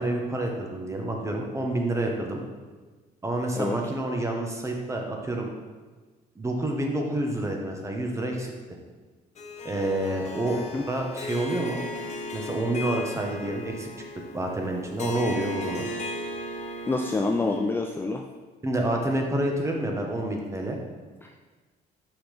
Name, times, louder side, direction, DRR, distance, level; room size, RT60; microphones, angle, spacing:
voice 1, 0.0-2.4 3.2-5.5 6.4-8.5 9.6-10.6 10.9-11.8 12.3-13.9 14.3-15.9 18.6-20.8, right 1 dB, 15° right, 1 dB, 1.0 m, -28 dB
Harp, 9.4-17.8, left 1 dB, 45° left, 0.7 m, -36 dB
voice 2, 10.5-10.8 16.9-18.2 21.2-21.3, left 3 dB, 15° left, 3 dB, 0.3 m, -27 dB
5.8 x 5.7 x 3.4 m, 1.3 s
cardioid pair, 110°, 17 cm